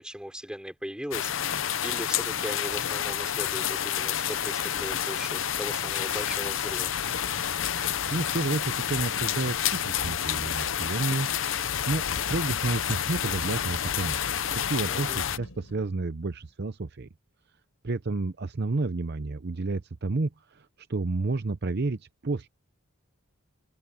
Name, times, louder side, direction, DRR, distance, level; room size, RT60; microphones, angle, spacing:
voice 1, 0.0-6.9 14.9-15.2, equal, 5° right, 5.6 m, -38 dB
sound 1, 1.1-15.4, left 9 dB, 65° left, 0.7 m, -29 dB
sound 2, 7.1-16.5, left 1 dB, 85° left, 5.2 m, -46 dB
voice 2, 8.1-14.2 14.5-17.1 17.8-22.5, right 3 dB, 50° right, 0.7 m, -31 dB
open air
head